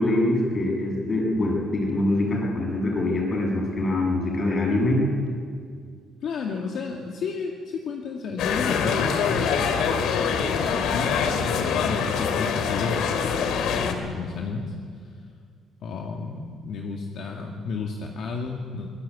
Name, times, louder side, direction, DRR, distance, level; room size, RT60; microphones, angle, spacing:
voice 1, 0.0-5.1, left 1 dB, 30° left, 0 dB, 6.9 m, -24 dB
voice 2, 6.2-14.7 15.8-18.9, left 4 dB, 60° left, 0 dB, 2.1 m, -32 dB
sound 1, 8.4-13.9, left 6 dB, 75° left, 2.5 m, -24 dB
24.5 x 19.5 x 8.4 m, 2.1 s
cardioid pair, 145°, 0 cm